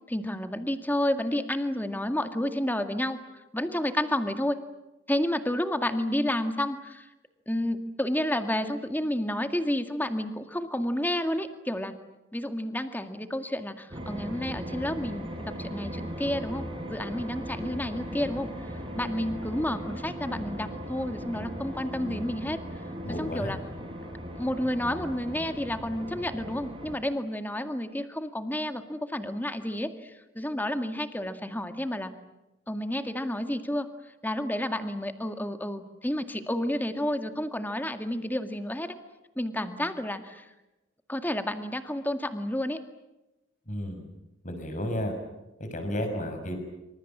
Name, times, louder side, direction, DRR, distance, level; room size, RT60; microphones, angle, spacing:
voice 1, 0.1-3.2 3.5-4.6 5.1-7.1 7.5-12.0 12.3-18.5 18.9-22.6 23.2-23.6 24.4-32.1 32.7-33.9 34.2-38.9 39.4-40.5 41.1-42.8, left 1 dB, 10° left, 8 dB, 2.0 m, -30 dB
sound 1, 13.9-27.0, equal, 30° right, 5.9 m, -38 dB
voice 2, 23.0-23.5 43.7-44.1 44.4-45.2 45.6-46.6, equal, 40° left, 6 dB, 6.4 m, -32 dB
27.0 x 25.5 x 7.5 m, 1.0 s
head